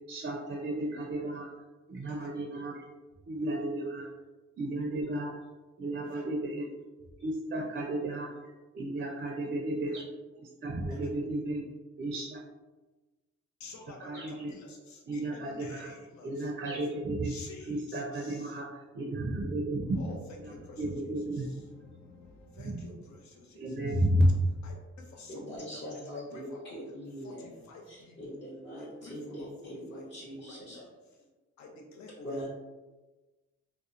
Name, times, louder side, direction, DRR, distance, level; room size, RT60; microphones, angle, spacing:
voice 1, 0.1-1.5 1.9-2.8 3.3-4.1 4.6-5.3 5.8-6.7 7.2-8.3 8.7-10.0 10.6-11.6 12.0-12.4 14.0-14.5 15.1-15.9 16.2-17.3 17.7-20.0 20.8-21.5 22.6-22.8 23.6-24.3, right 1 dB, 35° right, 0 dB, 0.4 m, -32 dB
voice 2, 13.6-16.8 17.2-18.6 19.0-19.4 19.8-24.1 24.6-26.8 27.2-28.4 28.8-30.1 30.3-30.9 31.6-32.5, left 3 dB, 70° left, 1 dB, 0.6 m, -50 dB
voice 3, 25.3-27.5 27.9-30.8 32.2-32.5, equal, 35° left, -9 dB, 0.8 m, -41 dB
2.8 x 2.1 x 2.4 m, 1.2 s
cardioid pair, 80°, 29 cm